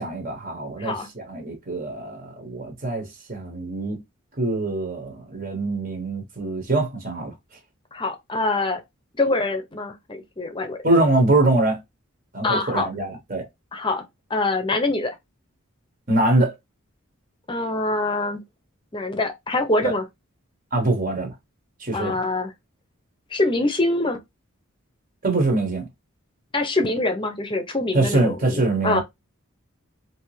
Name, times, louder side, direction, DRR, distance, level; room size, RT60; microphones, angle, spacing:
voice 1, 0.0-4.0 4.4-7.3 10.8-11.8 12.3-13.5 16.1-16.5 19.8-19.9 20.7-21.3 21.8-22.1 25.2-25.9 27.9-29.0, right 2 dB, 40° right, 1.0 m, -23 dB
voice 2, 7.9-8.8 9.2-10.8 12.4-12.9 13.7-14.0 14.3-15.1 17.5-18.4 18.9-20.0 21.9-22.5 23.3-24.2 26.5-29.0, left 2 dB, 25° left, 0.7 m, -24 dB
3.3 x 2.7 x 3.2 m
head